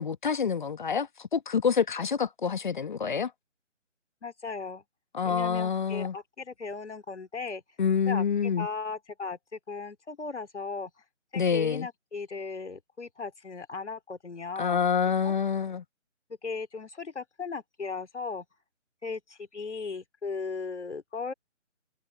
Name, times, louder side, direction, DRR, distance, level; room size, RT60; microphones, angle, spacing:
voice 1, 0.0-3.3 5.1-6.1 7.8-8.7 11.3-11.9 14.6-15.8, left 6 dB, 40° left, 1.2 m, -27 dB
voice 2, 4.2-4.8 5.2-7.6 8.1-10.9 11.3-14.8 15.2-15.3 16.3-18.5 19.0-21.3, left 4 dB, 65° left, 3.5 m, -37 dB
figure-of-eight pair, 150°, 38 cm